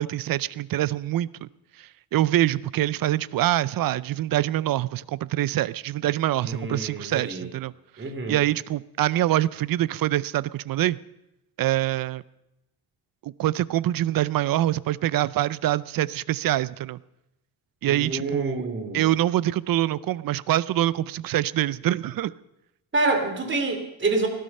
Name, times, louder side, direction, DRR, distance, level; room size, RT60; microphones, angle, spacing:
voice 1, 0.0-1.5 1.8-7.7 8.3-11.0 11.6-12.2 13.2-17.0 17.8-18.6 18.9-22.3, right 14 dB, 60° right, 0.5 m, -25 dB
voice 2, 6.4-7.5 8.0-8.4 17.9-19.1 22.9-24.3, right 3 dB, 30° right, 2.7 m, -27 dB
18.0 x 12.5 x 5.4 m
cardioid pair, 125°, 39 cm